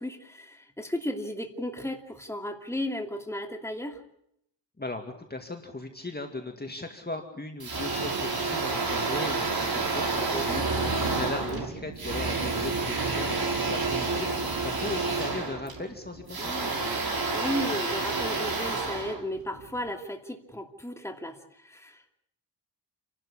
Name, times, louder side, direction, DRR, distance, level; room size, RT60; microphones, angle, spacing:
voice 1, 0.0-4.0 10.3-10.7 11.4-11.6 16.4-17.0 17.3-21.4 21.6-22.1, left 1 dB, 5° left, 4 dB, 2.7 m, -35 dB
voice 2, 4.8-16.5, left 2 dB, 20° left, 4 dB, 2.2 m, -38 dB
sound 1, 7.6-19.8, right 3 dB, 55° right, 5.5 m, -29 dB
28.5 x 12.5 x 8.5 m, 0.75 s
wide cardioid pair, 85°, 43 cm